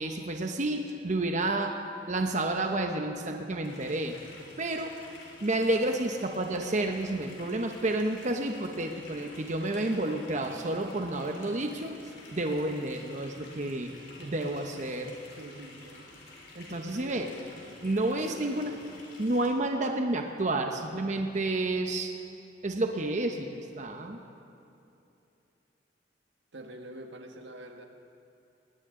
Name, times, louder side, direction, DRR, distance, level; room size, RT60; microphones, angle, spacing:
voice 1, 0.0-1.7 2.1-4.2 4.6-4.9 5.4-11.9 12.3-13.9 14.2-15.1 16.5-17.3 17.8-18.7 19.2-22.1 22.6-24.2, right 2 dB, 40° right, 3 dB, 0.9 m, -30 dB
sound 1, 3.6-19.5, left 2 dB, 80° left, 3.6 m, -50 dB
voice 2, 15.4-16.1 16.7-17.5 17.9-18.8 26.5-27.8, right 1 dB, 85° right, 4 dB, 1.5 m, -46 dB
20.0 x 18.0 x 3.8 m, 2.8 s
head